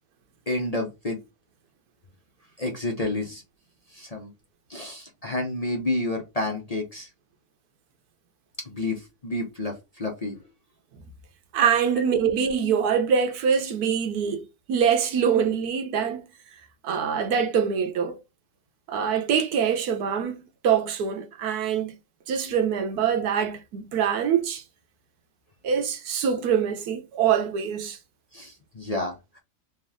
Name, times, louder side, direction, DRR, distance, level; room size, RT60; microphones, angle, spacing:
voice 1, 0.5-1.2 2.6-3.4 3.9-4.3 4.7-7.1 8.6-10.4 11.9-12.2 28.3-29.4, left 2 dB, 35° left, 0.7 m, -30 dB
voice 2, 11.5-16.2 16.8-18.2 18.9-22.0 22.3-24.6 25.6-28.0, right 7 dB, 85° right, 1.3 m, -24 dB
3.3 x 3.0 x 3.5 m
omnidirectional pair, 1.6 m